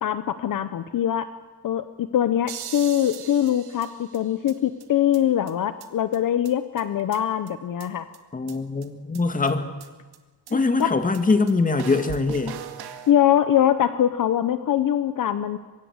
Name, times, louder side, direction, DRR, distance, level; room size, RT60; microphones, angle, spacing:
voice 1, 0.0-1.3 1.6-8.1 10.5-10.9 13.1-15.6, left 10 dB, 55° left, 12 dB, 1.0 m, -23 dB
sound 1, 2.5-4.5 4.8-4.9 5.1-5.2 5.5-5.6 5.8-5.9 6.1-6.2 6.4-6.5 6.8-7.5 7.8-7.9 8.1-8.2 8.5-8.6 8.8-8.9 9.1-9.2 9.5-9.6 9.8-9.9 10.1-10.2 10.5-10.6 10.8-10.9 11.1-11.2 11.5-11.6 11.8-13.1, right 10 dB, 90° right, 2.0 m, -39 dB
voice 2, 8.3-9.7 10.5-12.6, left 3 dB, 20° left, 8 dB, 1.9 m, -23 dB
24.5 x 22.5 x 8.1 m, 1.3 s
cardioid pair, 155°, 38 cm